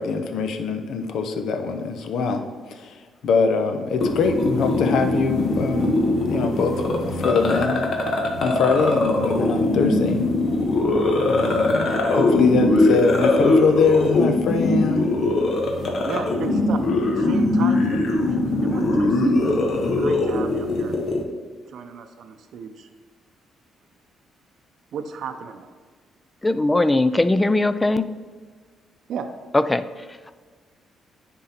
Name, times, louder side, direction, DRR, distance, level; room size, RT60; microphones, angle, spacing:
voice 1, 0.0-2.4 2.8-2.9 3.2-7.8 8.4-10.2 11.3-15.1, left 4 dB, 75° left, 6 dB, 0.8 m, -23 dB
sound 1, 4.0-21.2, left 2 dB, 55° left, 1.3 m, -21 dB
voice 2, 16.0-16.8 17.2-19.4 20.0-21.0 21.7-22.9 24.9-25.7 29.1-29.3, right 6 dB, 70° right, 7 dB, 0.6 m, -33 dB
voice 3, 26.4-28.1 29.5-30.4, left 2 dB, 15° left, 12 dB, 0.4 m, -20 dB
9.9 x 3.8 x 4.4 m, 1.5 s
cardioid pair, 90°, 0 cm